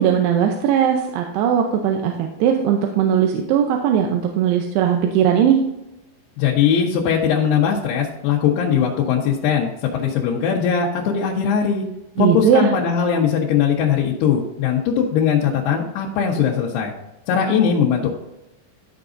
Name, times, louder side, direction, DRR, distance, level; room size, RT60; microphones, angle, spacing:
voice 1, 0.0-5.6 12.2-12.7, right 9 dB, 90° right, 3 dB, 2.8 m, -18 dB
voice 2, 6.4-11.8 12.2-16.9 17.3-18.1, left 7 dB, 90° left, -4 dB, 3.1 m, -20 dB
12.0 x 6.0 x 2.6 m, 0.91 s
omnidirectional pair, 4.6 m